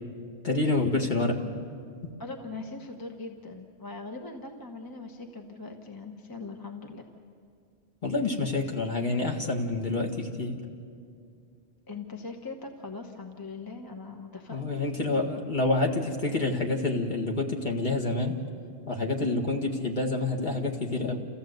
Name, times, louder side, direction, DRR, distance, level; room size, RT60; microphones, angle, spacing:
voice 1, 0.4-1.4 8.0-10.6 14.5-18.4 18.9-21.2, left 2 dB, 45° left, 1 dB, 2.0 m, -28 dB
voice 2, 2.2-7.0 11.9-14.7, left 3 dB, 20° left, 3 dB, 1.2 m, -41 dB
29.5 x 15.0 x 8.0 m, 2.3 s
omnidirectional pair, 1.2 m